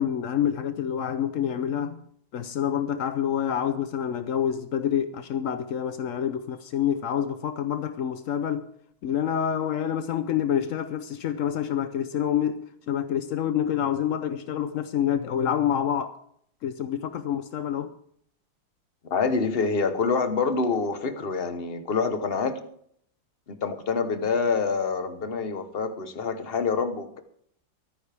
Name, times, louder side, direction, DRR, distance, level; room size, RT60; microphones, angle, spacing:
voice 1, 0.0-2.0 2.3-8.7 9.0-16.1 16.6-17.9, left 9 dB, 80° left, 0.7 m, -27 dB
voice 2, 19.1-22.6 23.5-27.2, left 5 dB, 40° left, 1.0 m, -26 dB
24.0 x 9.6 x 3.4 m
omnidirectional pair, 2.2 m